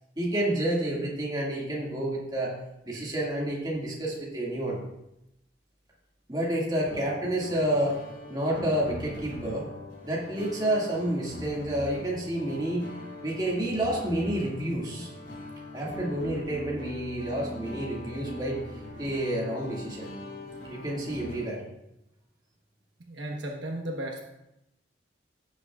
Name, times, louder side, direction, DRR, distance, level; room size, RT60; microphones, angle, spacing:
voice 1, 0.2-2.5 2.8-4.8 6.3-8.0 8.3-9.7 10.0-12.9 13.2-15.1 15.7-18.6 19.0-20.1 20.7-21.6, right 1 dB, 20° right, -4 dB, 2.1 m, -29 dB
sound 1, 6.9-21.5, equal, 70° left, 3.0 m, -41 dB
voice 2, 23.0-24.2, right 1 dB, 70° right, 0 dB, 1.2 m, -35 dB
16.0 x 7.6 x 2.4 m, 0.87 s
head